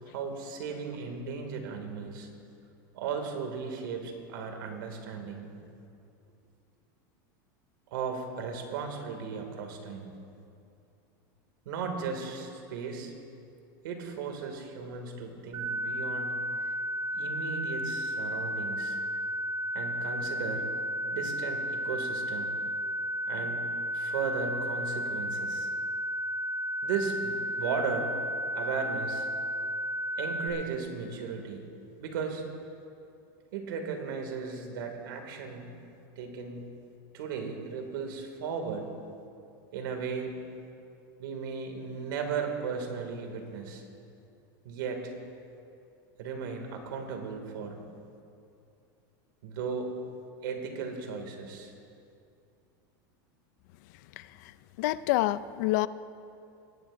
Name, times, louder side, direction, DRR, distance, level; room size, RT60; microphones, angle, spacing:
voice 1, 0.0-2.3 2.9-5.5 7.9-10.1 11.7-13.1 13.8-16.3 16.6-16.7 17.1-19.0 19.7-20.7 21.0-22.6 23.3-23.7 23.9-25.7 26.8-28.1 28.6-29.3 30.2-31.7 32.0-32.4 33.5-35.7 36.2-36.6 37.1-38.9 39.7-40.3 41.2-43.8 44.6-45.1 46.2-47.8 49.4-49.9 50.4-51.7, right 5 dB, 80° right, 3 dB, 2.4 m, -36 dB
sound 1, 15.5-30.5, equal, 35° right, 2.7 m, -33 dB
voice 2, 54.2-55.9, left 17 dB, 60° left, 16 dB, 0.4 m, -28 dB
20.5 x 17.0 x 2.6 m, 2.6 s
supercardioid pair, 155°, 11 cm